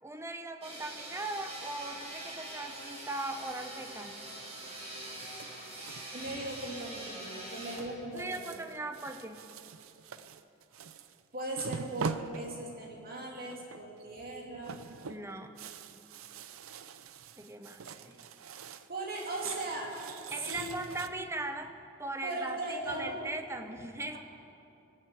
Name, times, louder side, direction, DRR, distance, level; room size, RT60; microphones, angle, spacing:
voice 1, 0.0-4.3 8.1-9.5 15.1-15.5 17.4-18.2 20.3-21.7 22.0-24.2, right 2 dB, 10° right, 6 dB, 0.7 m, -39 dB
sound 1, 0.6-7.8, right 1 dB, 30° right, 4.3 m, -44 dB
sound 2, 5.2-6.1 6.6-7.0 7.6-11.2 11.6-13.0 13.5-14.0 14.3-18.9 19.1-21.1, right 5 dB, 80° right, 0.6 m, -43 dB
voice 2, 6.1-8.6 11.3-14.8 18.9-19.9 20.4-20.8 22.2-23.2, right 2 dB, 45° right, -2 dB, 2.6 m, -38 dB
19.0 x 7.6 x 8.1 m, 2.7 s
head